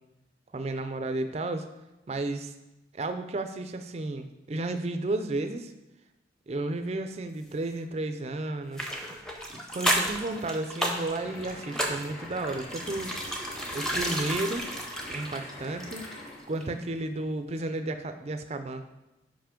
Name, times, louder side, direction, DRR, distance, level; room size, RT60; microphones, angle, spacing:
voice 1, 0.5-1.7 2.1-2.5 2.9-5.7 6.5-8.9 9.5-13.1 13.7-14.7 15.1-16.0 16.5-18.8, right 2 dB, 35° right, 8 dB, 0.4 m, -32 dB
sound 1, 8.7-16.3 16.6-16.7, equal, 5° left, 0.6 m, -32 dB
sound 2, 11.1-16.6, left 1 dB, 45° left, 1.2 m, -44 dB
5.7 x 5.1 x 5.0 m, 0.97 s
head